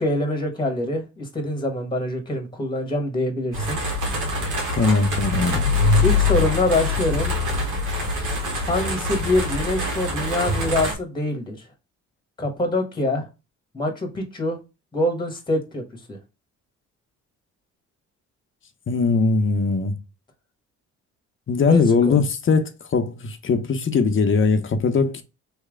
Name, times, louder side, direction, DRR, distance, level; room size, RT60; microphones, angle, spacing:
voice 1, 0.0-3.8 6.0-7.3 8.6-11.7 12.4-13.3 13.7-14.6 14.9-15.8 16.1-16.2 21.6-22.2, left 1 dB, 15° left, 1.4 m, -25 dB
sound 1, 3.5-10.9, left 2 dB, 80° right, 1.4 m, -24 dB
voice 2, 4.8-5.7 18.9-20.0 21.5-25.2, left 4 dB, 40° left, 0.8 m, -20 dB
3.3 x 2.9 x 3.6 m
cardioid pair, 90°, 30 cm